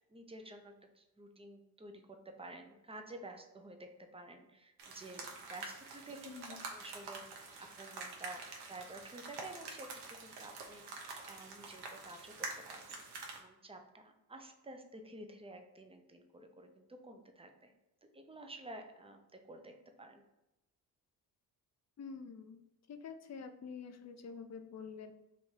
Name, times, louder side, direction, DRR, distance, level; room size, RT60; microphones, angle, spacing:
voice 1, 0.1-7.5 7.8-8.4 8.7-13.0 13.3-17.7 18.1-19.7 20.0-20.2, right 2 dB, 15° right, 5 dB, 0.6 m, -51 dB
sound 1, 4.8-13.4, right 3 dB, 90° right, 0.8 m, -47 dB
voice 2, 6.2-6.6 22.0-22.6 22.9-25.1, left 5 dB, 45° left, 7 dB, 0.5 m, -47 dB
3.2 x 2.7 x 4.4 m, 0.94 s
cardioid pair, 70°, 38 cm